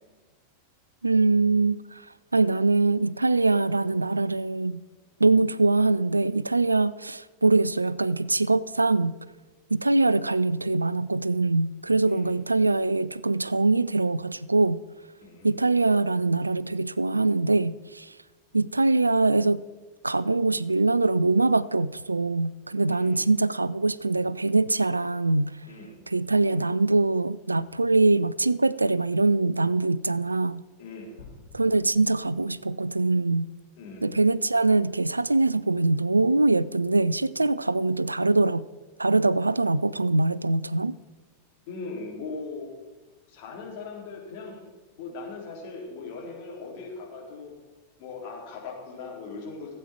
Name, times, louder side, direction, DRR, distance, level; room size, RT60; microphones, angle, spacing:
voice 1, 1.0-2.0 2.3-4.8 5.2-9.2 9.7-14.8 15.4-18.1 18.5-19.6 20.0-25.6 26.1-30.6 31.5-33.5 34.0-38.7 39.0-41.0, right 3 dB, 80° right, 0.3 m, -23 dB
voice 2, 15.2-15.5 22.9-23.2 25.7-26.0 30.8-31.2 33.8-34.2 41.7-42.7 43.3-44.6 45.0-47.5 48.0-49.7, left 4 dB, 45° left, 3.8 m, -39 dB
sound 1, 31.2-33.1, left 4 dB, 80° left, 4.0 m, -51 dB
15.5 x 8.6 x 4.5 m
figure-of-eight pair, 90°, 0 cm